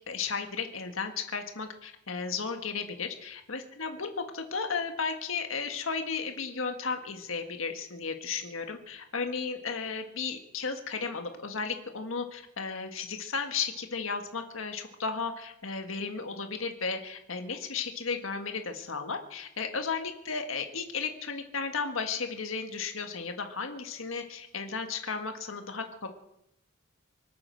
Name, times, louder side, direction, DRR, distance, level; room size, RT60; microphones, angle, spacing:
voice 1, 0.1-26.1, left 5 dB, 90° left, 5 dB, 1.7 m, -34 dB
24.5 x 8.7 x 6.4 m, 0.80 s
head